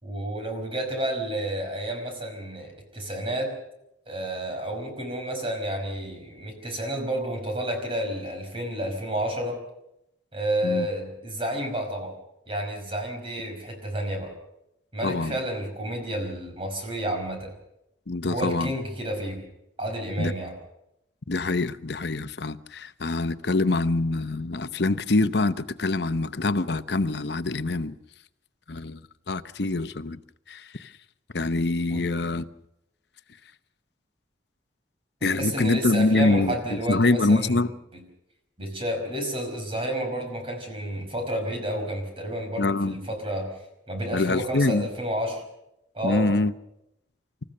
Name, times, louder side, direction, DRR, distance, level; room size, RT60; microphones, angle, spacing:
voice 1, 0.0-3.5 4.1-9.6 10.3-12.2 12.5-14.3 14.9-17.5 18.3-19.4 19.8-20.5 31.9-32.0 35.4-37.6 38.6-43.5 43.9-45.4 45.9-46.3, right 1 dB, 30° right, 3 dB, 5.3 m, -30 dB
voice 2, 15.0-15.4 18.1-18.7 20.2-20.3 21.3-27.9 28.7-29.0 29.3-30.2 30.5-30.9 31.3-32.4 35.2-37.7 42.6-42.9 44.1-44.9 46.0-46.5, left 2 dB, 60° left, 11 dB, 0.9 m, -25 dB
29.0 x 14.5 x 6.7 m, 0.84 s
head